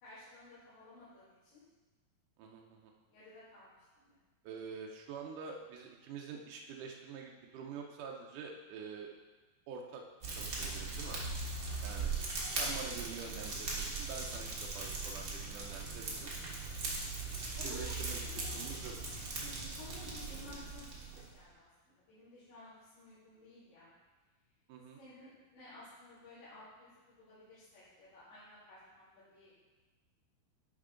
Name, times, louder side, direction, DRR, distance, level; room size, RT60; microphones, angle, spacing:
voice 1, 0.0-1.6 3.1-3.8 4.0-4.2 12.4-12.7 17.6-18.6 19.4-23.9 25.0-29.6, left 2 dB, 75° left, -12 dB, 4.2 m, -54 dB
voice 2, 2.4-2.9 4.4-9.1 9.7-11.2 11.8-12.1 12.6-16.3 17.6-18.9 24.7-25.0, right 6 dB, 80° right, 0 dB, 1.8 m, -46 dB
Fire, 10.2-21.4, right 3 dB, 65° right, 1.1 m, -39 dB
10.0 x 5.6 x 3.8 m, 1.3 s
omnidirectional pair, 4.5 m